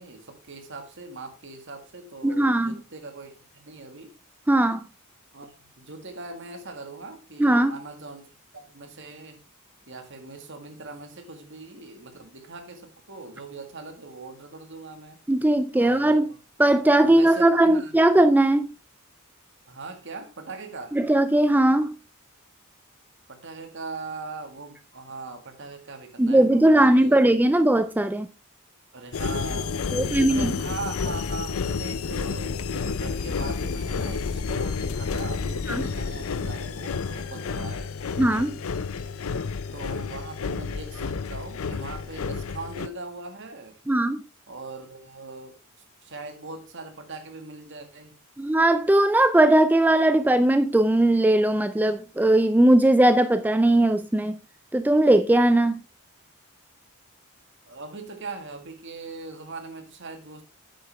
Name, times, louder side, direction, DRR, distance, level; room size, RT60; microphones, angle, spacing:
voice 1, 0.0-4.1 5.3-9.4 9.9-15.2 15.7-16.4 17.0-18.0 19.7-21.0 23.3-27.2 28.9-29.9 30.3-37.9 39.7-43.8 44.5-45.6 46.0-48.2 57.7-60.4, right 3 dB, 55° right, 1.9 m, -40 dB
voice 2, 2.2-2.8 4.5-4.8 7.4-7.7 15.3-16.3 16.6-18.7 20.9-21.9 26.2-28.3 29.9-30.5 35.7-35.8 38.2-38.6 43.9-44.2 48.4-54.4 54.7-55.7, right 1 dB, 10° right, 0.4 m, -19 dB
sound 1, 29.1-42.9, left 5 dB, 75° left, 0.6 m, -30 dB
9.7 x 8.0 x 3.4 m
head